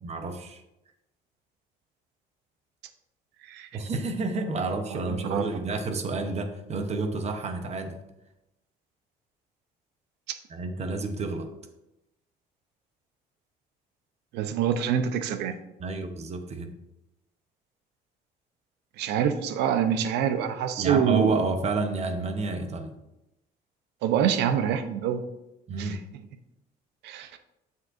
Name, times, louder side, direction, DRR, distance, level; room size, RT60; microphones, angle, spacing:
voice 1, 0.0-0.6 3.7-8.0 10.5-11.5 15.8-16.7 20.8-22.9 25.7-26.0, right 3 dB, 40° right, 7 dB, 0.8 m, -30 dB
voice 2, 4.9-5.4 14.3-15.6 19.0-21.4 24.0-25.2 25.8-26.0 27.0-27.4, right 8 dB, 85° right, 9 dB, 0.6 m, -26 dB
7.1 x 6.5 x 2.5 m, 0.90 s
cardioid pair, 110°, 17 cm